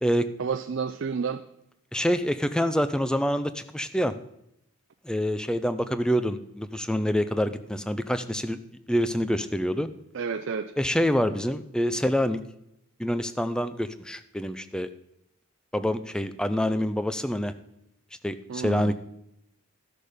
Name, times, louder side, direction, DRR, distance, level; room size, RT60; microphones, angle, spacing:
voice 1, 0.4-1.4 10.1-10.7 18.5-18.9, right 5 dB, 55° right, 7 dB, 0.4 m, -30 dB
voice 2, 1.9-4.1 5.0-8.6 8.9-9.9 10.8-12.4 13.0-14.9 15.7-17.5 18.2-18.9, equal, 5° left, 12 dB, 0.4 m, -26 dB
13.0 x 6.5 x 5.0 m, 0.83 s
head